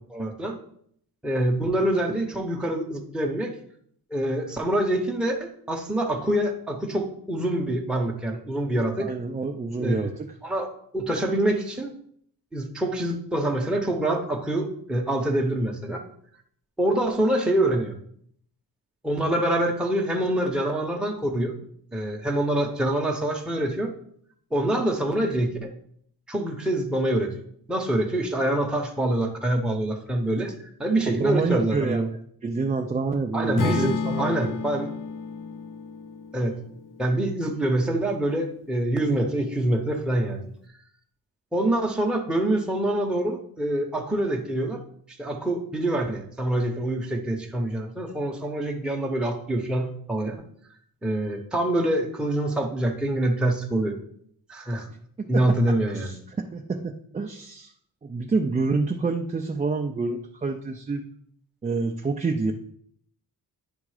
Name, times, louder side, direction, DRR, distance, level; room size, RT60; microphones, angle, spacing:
voice 1, 0.1-0.6 1.2-3.5 4.1-9.1 9.8-10.0 10.4-10.7 10.9-11.9 12.5-16.0 16.8-17.9 19.0-21.6 21.9-23.9 24.5-25.7 26.3-27.3 27.7-32.1 33.3-34.9 36.3-36.6 37.0-40.4 41.5-44.8 45.2-50.4 51.0-54.0 54.5-54.9 55.3-56.1, right 1 dB, ahead, 1 dB, 0.7 m, -25 dB
voice 2, 9.0-10.3 31.1-32.0 32.4-34.5 55.2-55.4 55.9-57.7 58.0-61.1 61.6-62.5, right 4 dB, 20° right, 2 dB, 0.4 m, -27 dB
Acoustic guitar / Strum, 33.6-37.8, left 6 dB, 55° left, 0.5 m, -32 dB
9.6 x 3.6 x 4.8 m, 0.65 s
wide cardioid pair, 155°, 38 cm